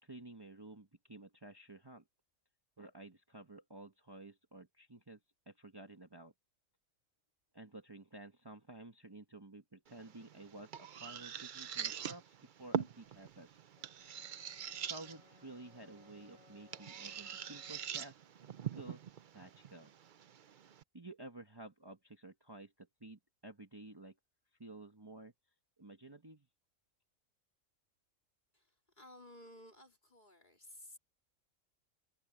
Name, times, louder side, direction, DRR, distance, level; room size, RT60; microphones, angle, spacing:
voice 1, 0.0-2.0 2.8-5.2 5.5-6.3 7.5-13.6 14.8-18.2 18.8-19.0 19.3-19.9 20.9-24.2 24.6-25.3 25.8-26.5, right 2 dB, 20° right, 1.2 m, -52 dB
sound 1, 9.9-20.8, right 8 dB, 50° right, 0.6 m, -44 dB
Brass instrument, 13.8-18.1, left 4 dB, 80° left, 3.8 m, -65 dB
voice 2, 28.5-31.0, left 1 dB, 35° left, 3.8 m, -56 dB
omnidirectional pair, 1.4 m